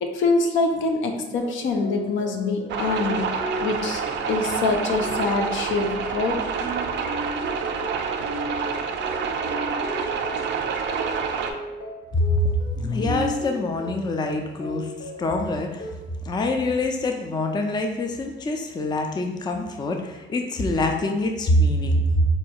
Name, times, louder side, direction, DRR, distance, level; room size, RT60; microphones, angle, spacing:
voice 1, 0.0-3.4 3.6-4.0 4.3-6.5 6.8-6.9, left 3 dB, 75° left, 4 dB, 0.5 m, -24 dB
sound 1, 1.3-16.1, left 1 dB, 45° left, 0.8 m, -36 dB
sound 2, 2.7-11.5, right 6 dB, 65° right, 0.4 m, -28 dB
voice 2, 12.1-15.9 16.3-22.3, left 1 dB, 20° left, 4 dB, 0.4 m, -24 dB
4.2 x 2.3 x 2.8 m, 1.1 s
cardioid pair, 90°, 20 cm